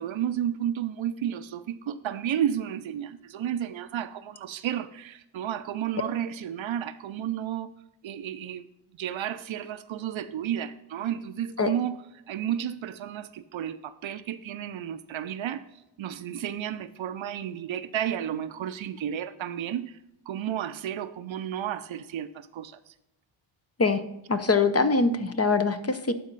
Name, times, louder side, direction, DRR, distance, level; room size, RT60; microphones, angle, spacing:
voice 1, 0.0-7.7 8.0-8.7 9.0-12.0 12.3-15.6 16.0-19.9 20.3-22.8, right 10 dB, 70° right, 0.6 m, -32 dB
voice 2, 24.3-26.1, left 4 dB, 30° left, 0.7 m, -23 dB
11.5 x 4.2 x 4.0 m
cardioid pair, 65°, 49 cm